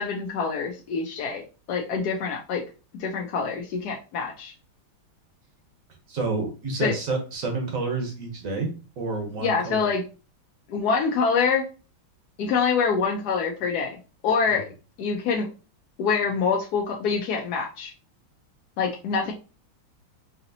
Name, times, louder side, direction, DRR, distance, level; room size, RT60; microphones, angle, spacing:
voice 1, 0.0-2.6 3.0-4.5 6.8-6.9 9.4-10.0 10.7-11.7 12.4-14.0 14.2-14.7 15.0-15.5 16.0-17.9 18.8-19.3, left 5 dB, 75° left, 0 dB, 0.9 m, -25 dB
voice 2, 6.1-9.9 14.5-14.6, right 3 dB, 50° right, 3 dB, 1.1 m, -29 dB
5.0 x 2.7 x 2.6 m, 0.33 s
omnidirectional pair, 2.3 m